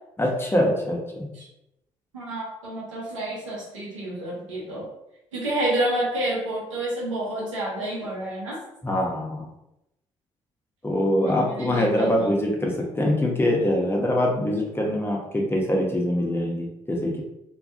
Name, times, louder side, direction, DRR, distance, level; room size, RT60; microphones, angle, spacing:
voice 1, 0.2-1.3 8.8-9.5 10.8-17.2, left 1 dB, 15° left, -1 dB, 0.7 m, -24 dB
voice 2, 2.1-4.8 5.3-8.6 11.2-12.4, right 1 dB, 90° right, -6 dB, 0.7 m, -29 dB
2.2 x 2.1 x 2.6 m, 0.86 s
hypercardioid pair, 45°, 16 cm